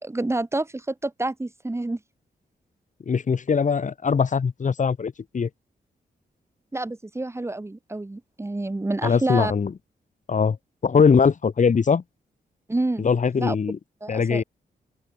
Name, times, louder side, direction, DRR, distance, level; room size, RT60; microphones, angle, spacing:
voice 1, 0.0-2.0 6.7-9.5 12.7-13.1 13.4-13.6 14.0-14.4, right 2 dB, 15° right, 3.6 m, -28 dB
voice 2, 3.1-5.5 9.0-9.7 10.3-10.6 10.8-12.0 13.0-13.8 14.1-14.4, left 6 dB, 50° left, 4.8 m, -21 dB
open air
wide cardioid pair, 145°, 17 cm